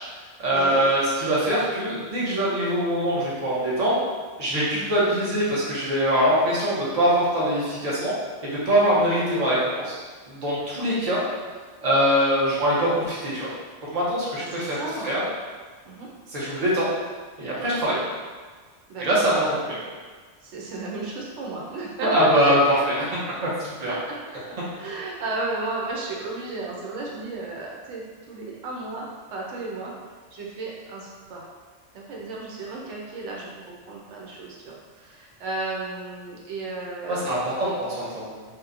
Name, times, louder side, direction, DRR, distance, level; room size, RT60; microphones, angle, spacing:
voice 1, 0.4-4.0 4.4-8.1 8.5-9.9 10.3-11.2 11.8-13.5 13.9-15.2 16.3-16.9 17.4-18.0 19.0-19.8 22.0-22.9 23.4-24.0 37.1-38.4, equal, 40° right, -7 dB, 0.7 m, -23 dB
voice 2, 14.4-15.1 15.8-16.1 17.9-18.0 18.9-19.1 19.4-19.6 20.4-22.5 23.0-23.1 23.9-24.2 24.5-29.9 30.3-31.5 31.9-37.4 37.6-37.8, right 3 dB, 90° right, -3 dB, 0.9 m, -34 dB
2.8 x 2.1 x 2.4 m, 1.5 s
omnidirectional pair, 1.1 m